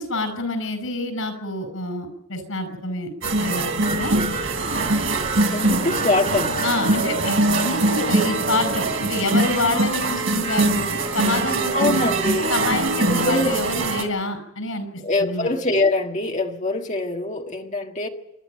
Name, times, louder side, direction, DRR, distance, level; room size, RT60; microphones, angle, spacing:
voice 1, 0.0-3.1 3.4-4.2 5.6-5.8 6.6-10.9 11.1-12.1 12.5-14.9 15.2-15.5, left 2 dB, 90° left, 5.4 m, -27 dB
sound 1, 3.2-14.0, right 2 dB, 75° right, 3.3 m, -22 dB
voice 2, 5.5-6.7 11.7-12.5 13.1-13.5 15.0-18.1, left 2 dB, 35° left, 1.7 m, -23 dB
28.0 x 11.5 x 9.0 m
head